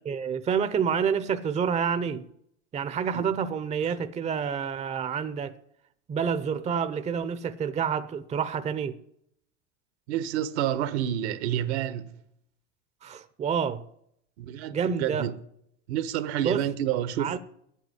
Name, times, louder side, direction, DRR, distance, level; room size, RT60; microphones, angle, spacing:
voice 1, 0.0-2.3 2.7-5.5 6.1-9.0 13.0-13.8 14.7-15.3 16.4-16.7 17.2-17.4, right 7 dB, 20° right, 0.7 m, -28 dB
voice 2, 10.1-12.1 14.4-15.3 15.9-17.4, right 11 dB, 65° right, 1.2 m, -29 dB
10.0 x 8.4 x 9.7 m
hypercardioid pair, 110°, 35 cm